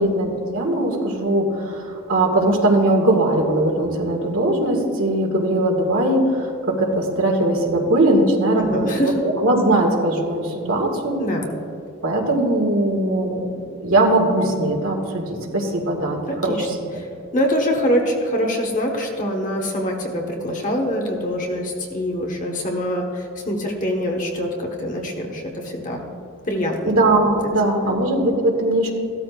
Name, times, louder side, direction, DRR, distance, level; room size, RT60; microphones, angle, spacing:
voice 1, 0.0-11.2 12.0-13.4 13.8-16.2 16.4-16.6 26.9-28.9, right 1 dB, 75° right, 0 dB, 1.9 m, -20 dB
voice 2, 8.5-9.1 11.2-11.5 16.3-16.7 16.9-26.1 26.5-27.0 27.7-27.9, equal, 35° left, 0 dB, 1.3 m, -24 dB
15.5 x 13.0 x 2.5 m, 2.6 s
head